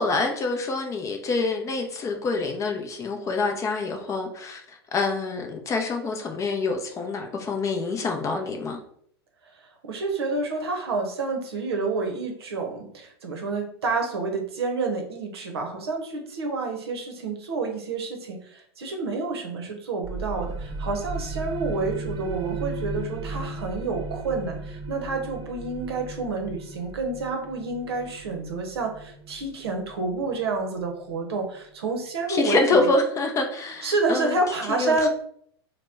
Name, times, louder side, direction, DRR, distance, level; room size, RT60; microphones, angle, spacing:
voice 1, 0.0-8.8 32.3-34.4 34.7-35.1, left 3 dB, 20° left, 4 dB, 0.5 m, -26 dB
voice 2, 9.6-32.9 33.8-35.1, right 3 dB, 70° right, 3 dB, 0.7 m, -29 dB
sound 1, 20.0-31.4, right 3 dB, 35° right, 0.5 m, -36 dB
2.9 x 2.1 x 3.4 m, 0.65 s
figure-of-eight pair, 95°, 14 cm